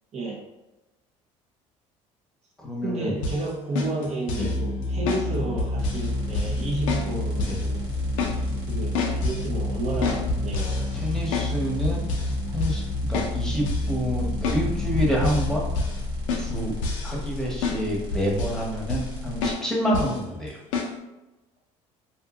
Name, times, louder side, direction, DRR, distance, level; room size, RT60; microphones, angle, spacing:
voice 1, 0.1-0.4 2.8-7.9 8.7-10.9, right 2 dB, 45° right, -2 dB, 0.6 m, -31 dB
voice 2, 2.6-3.2 4.3-4.5 7.4-7.6 10.9-12.0 12.5-12.8 13.1-15.7 16.4-16.7 17.0-20.6, equal, 5° left, -4 dB, 0.9 m, -28 dB
sound 1, 3.2-3.4 3.7-4.6 5.1-5.3 5.6-6.1 6.3-6.6 6.9-7.1 7.4-7.7 7.9-8.4 8.7-9.5 10.0-11.5 11.8-12.3 12.6-12.8 13.1-13.3 13.7-13.9 14.4-14.6 15.0-15.5 15.7-16.0 16.3-17.4 17.6-17.8 18.1-18.6 18.9-19.1 19.4-19.6 19.9-20.2 20.7-20.9, left 3 dB, 85° left, 0.5 m, -29 dB
sound 2, 4.4-17.7, left 2 dB, 35° left, 0.6 m, -29 dB
sound 3, 5.8-19.5, left 2 dB, 80° right, 0.9 m, -36 dB
2.6 x 2.6 x 2.4 m, 0.99 s
hypercardioid pair, 70°, 16 cm